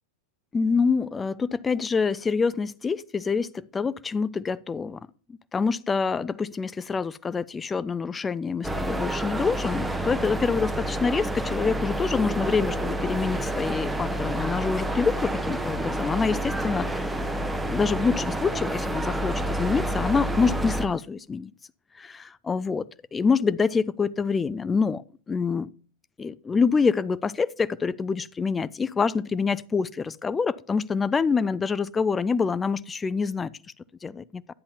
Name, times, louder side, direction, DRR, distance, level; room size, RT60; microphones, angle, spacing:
voice 1, 0.5-5.0 5.3-17.2 17.7-21.5 22.0-25.7 26.2-33.5 34.0-34.4, left 5 dB, 15° left, 0.4 m, -26 dB
sound 1, 8.6-20.9, right 1 dB, 5° right, 0.8 m, -29 dB
10.5 x 9.7 x 2.8 m
figure-of-eight pair, 90°, 0 cm